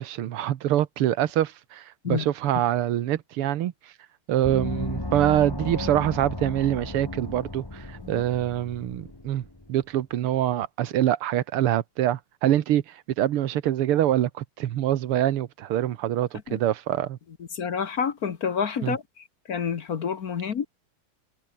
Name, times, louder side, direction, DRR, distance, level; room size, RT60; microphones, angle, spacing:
voice 1, 0.0-3.7 4.3-9.4 9.7-17.2 18.8-19.0, right 12 dB, 90° right, 2.0 m, -25 dB
Gong, 4.4-9.7, left 2 dB, 10° left, 1.6 m, -34 dB
voice 2, 17.5-19.0 19.5-20.6, left 7 dB, 50° left, 1.5 m, -28 dB
omnidirectional pair, 2.4 m